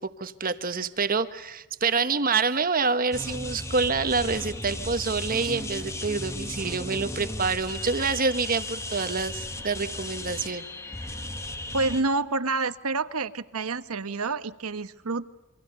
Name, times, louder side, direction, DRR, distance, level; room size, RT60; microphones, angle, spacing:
voice 1, 0.2-10.7, right 4 dB, 40° right, 10 dB, 1.3 m, -27 dB
sound 1, 3.1-12.0, left 1 dB, 15° left, 1.5 m, -35 dB
voice 2, 11.7-15.3, right 3 dB, 80° right, 12 dB, 1.2 m, -28 dB
28.0 x 25.0 x 6.7 m, 1.0 s
head